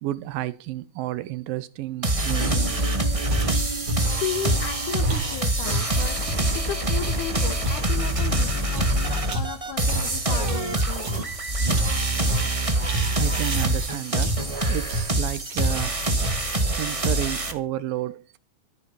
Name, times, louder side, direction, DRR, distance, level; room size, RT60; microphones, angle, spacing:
voice 1, 0.0-3.0 13.2-14.3 14.7-16.2 16.7-18.4, right 14 dB, 80° right, 2.7 m, -31 dB
sound 1, 2.0-17.5, right 1 dB, 30° right, 0.6 m, -25 dB
sound 2, 2.4-9.6 10.1-10.6 11.4-11.5 11.8-11.9 12.1-12.2, right 2 dB, 15° left, 1.5 m, -40 dB
sound 3, 3.3-6.5 7.0-11.4 11.7-13.9 14.2-14.6 14.9-15.2 15.5-16.6, right 1 dB, 60° right, 4.1 m, -29 dB
voice 2, 4.0-11.3, left 8 dB, 65° left, 2.8 m, -34 dB
14.0 x 9.7 x 7.1 m
omnidirectional pair, 4.1 m